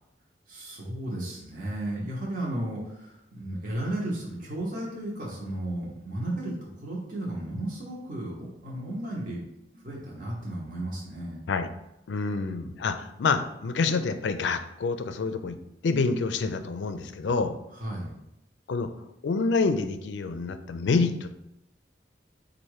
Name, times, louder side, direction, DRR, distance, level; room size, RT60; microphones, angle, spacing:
voice 1, 0.5-6.5 6.8-9.4 9.7-11.4 17.8-18.1, right 1 dB, 50° right, -4 dB, 1.0 m, -34 dB
voice 2, 12.1-15.6 15.8-17.6 18.7-18.9 19.2-21.3, left 4 dB, 80° left, 9 dB, 0.4 m, -27 dB
4.2 x 2.5 x 4.7 m, 0.84 s
head